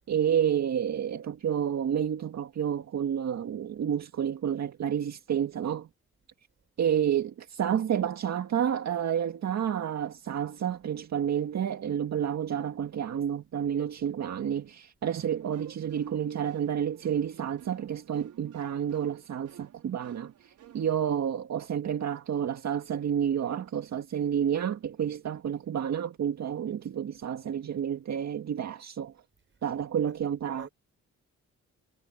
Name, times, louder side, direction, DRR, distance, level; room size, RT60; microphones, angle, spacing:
voice 1, 0.1-5.9 6.8-29.1 29.6-30.7, right 9 dB, 60° right, 1.9 m, -30 dB
sound 1, 15.1-21.1, right 10 dB, 80° right, 4.9 m, -54 dB
voice 2, 20.8-21.2 29.5-30.2 30.6-30.7, right 5 dB, 40° right, 6.3 m, -51 dB
cardioid pair, 75°, 30 cm